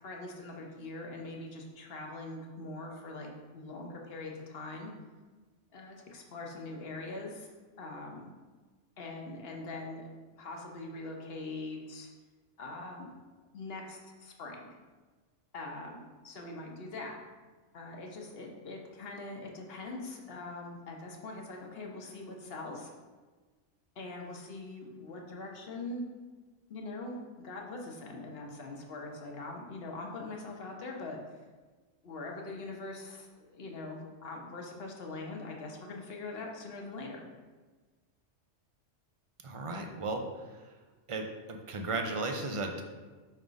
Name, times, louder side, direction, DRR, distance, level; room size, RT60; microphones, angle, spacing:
voice 1, 0.0-4.9 5.7-7.5 7.8-8.3 9.0-10.1 10.4-12.1 12.6-13.1 13.5-14.8 15.5-17.1 17.7-22.9 24.0-26.0 26.7-31.2 32.0-37.2, left 2 dB, 55° left, 0 dB, 1.1 m, -42 dB
voice 2, 39.4-40.2 41.1-41.2 41.7-42.8, right 3 dB, 50° right, 3 dB, 0.4 m, -34 dB
5.6 x 3.6 x 5.1 m, 1.3 s
omnidirectional pair, 1.3 m